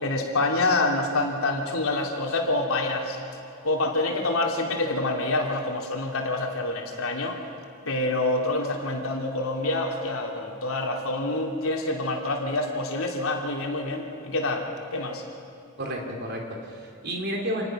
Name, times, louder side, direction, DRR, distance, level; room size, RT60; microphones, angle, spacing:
voice 1, 0.0-3.2 3.6-7.4 7.8-15.2, left 2 dB, 75° left, 1 dB, 3.1 m, -27 dB
voice 2, 15.8-17.7, equal, 50° right, 1 dB, 3.6 m, -31 dB
27.0 x 19.5 x 6.3 m, 2.6 s
head